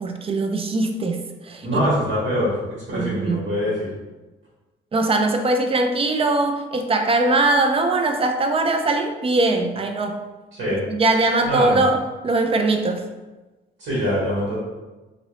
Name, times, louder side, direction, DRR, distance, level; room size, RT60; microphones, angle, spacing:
voice 1, 0.0-1.9 2.9-3.4 4.9-10.2 10.9-13.0, right 2 dB, 30° right, 5 dB, 0.4 m, -21 dB
voice 2, 1.6-2.5 2.9-3.9 10.5-10.8 11.4-11.8 13.8-14.6, equal, 80° right, -8 dB, 1.4 m, -23 dB
2.9 x 2.7 x 3.0 m, 1.2 s
cardioid pair, 90°, 20 cm